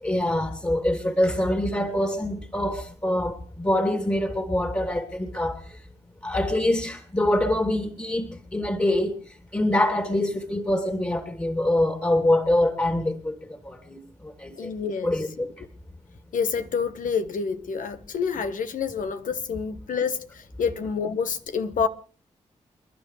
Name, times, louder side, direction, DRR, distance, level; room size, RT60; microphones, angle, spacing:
voice 1, 0.0-5.6 6.2-9.2 9.5-13.3 13.6-14.7 15.0-15.5, left 1 dB, 20° left, 2.9 m, -25 dB
voice 2, 14.6-15.1 15.4-15.5 16.3-21.9, left 6 dB, 75° left, 1.4 m, -28 dB
29.5 x 11.0 x 3.3 m
supercardioid pair, 40°, 14 cm